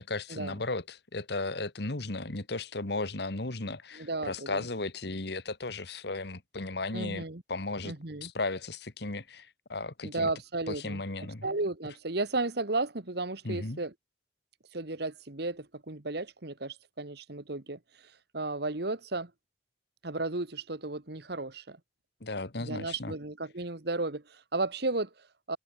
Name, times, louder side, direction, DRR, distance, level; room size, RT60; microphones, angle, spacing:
voice 1, 0.0-7.9 8.2-10.3 10.7-11.5 13.4-13.8 22.2-23.1, left 2 dB, 60° left, 1.7 m, -35 dB
voice 2, 3.9-4.7 6.9-7.4 7.8-8.3 10.0-11.0 11.4-13.9 14.7-19.3 20.0-21.8 22.6-25.6, right 2 dB, 60° right, 1.7 m, -34 dB
head